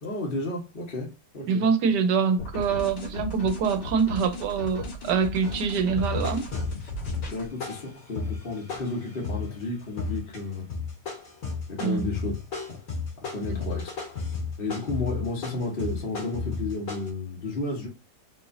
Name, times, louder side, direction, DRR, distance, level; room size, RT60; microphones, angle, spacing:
voice 1, 0.0-1.7 7.3-10.7 11.7-12.8 13.3-13.9 14.6-17.9, left 2 dB, 40° left, 1.1 m, -32 dB
voice 2, 1.5-6.4 11.8-12.1 13.5-13.6, right 6 dB, 80° right, 1.3 m, -25 dB
sound 1, 2.4-7.5, left 2 dB, 80° left, 2.2 m, -36 dB
sound 2, 5.4-5.6 6.0-9.6 10.0-10.4 10.7-17.1, left 4 dB, 55° left, 1.7 m, -33 dB
4.1 x 3.1 x 2.5 m
omnidirectional pair, 1.8 m